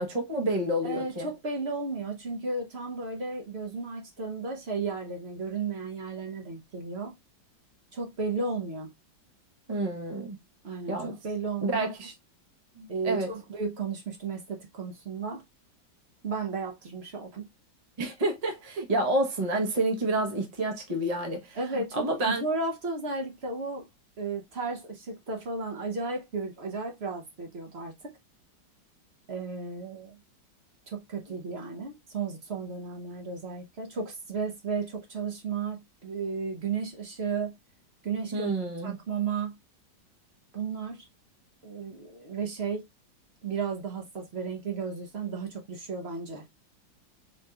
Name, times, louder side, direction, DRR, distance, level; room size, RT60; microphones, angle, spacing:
voice 1, 0.0-1.3 9.7-10.4 10.9-11.1 11.6-12.1 12.8-13.3 18.0-22.4 38.3-39.0, right 1 dB, 70° right, 0.3 m, -29 dB
voice 2, 0.8-7.1 7.9-8.9 10.6-11.9 12.9-15.4 16.2-17.4 21.5-23.9 24.2-27.9 29.3-30.2 30.9-37.5 38.0-38.5 38.8-39.5 40.5-41.0 41.6-42.8 43.4-46.4, right 4 dB, 50° right, 0.8 m, -34 dB
5.1 x 3.0 x 2.2 m
omnidirectional pair, 2.1 m